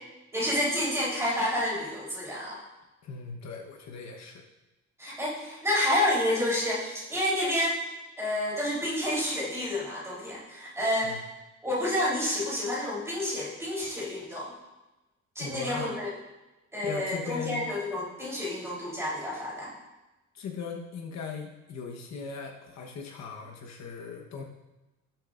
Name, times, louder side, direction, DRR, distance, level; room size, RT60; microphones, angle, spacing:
voice 1, 0.3-2.6 5.0-7.8 8.2-11.2 11.6-14.5 15.4-16.1 16.7-19.7, left 1 dB, 10° right, -6 dB, 3.7 m, -29 dB
voice 2, 3.0-4.4 11.0-11.2 15.4-15.9 16.8-17.7 20.3-24.4, left 5 dB, 65° left, 1 dB, 1.2 m, -38 dB
18.0 x 7.6 x 2.6 m, 1.1 s
cardioid pair, 175°, 30 cm